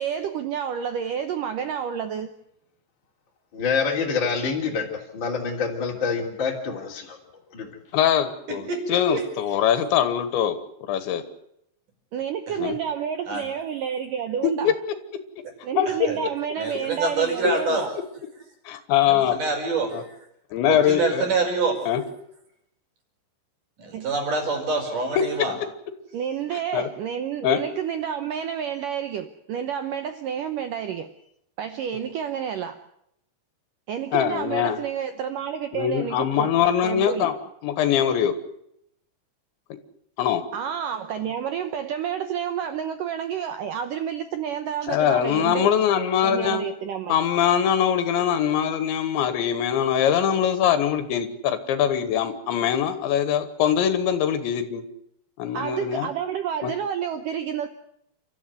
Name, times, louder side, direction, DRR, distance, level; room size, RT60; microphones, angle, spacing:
voice 1, 0.0-2.3 12.1-14.8 15.6-17.9 23.9-24.1 26.1-31.1 31.6-32.8 33.9-36.5 36.8-37.3 40.5-45.7 46.2-47.2 55.5-57.7, right 8 dB, 75° right, 9 dB, 2.0 m, -29 dB
voice 2, 3.5-7.2 7.5-7.7, left 5 dB, 30° left, 0 dB, 3.0 m, -26 dB
voice 3, 7.9-10.6 10.9-11.2 12.6-12.8 14.6-14.7 15.8-15.9 18.7-19.4 19.9-20.0 20.5-21.3 21.9-22.0 25.2-25.3 26.7-26.9 27.4-27.6 34.1-34.8 35.7-37.4 37.6-38.3 40.2-40.4 44.9-46.6 47.1-54.8 55.4-56.1 56.6-56.7, left 9 dB, 85° left, 11 dB, 3.8 m, -22 dB
voice 4, 8.5-9.2 13.3-13.4 15.9-16.2 16.6-17.9 19.1-20.0 20.7-21.8 23.8-25.5, right 3 dB, 45° right, 3 dB, 6.7 m, -26 dB
29.5 x 13.5 x 9.4 m, 0.77 s
omnidirectional pair, 5.1 m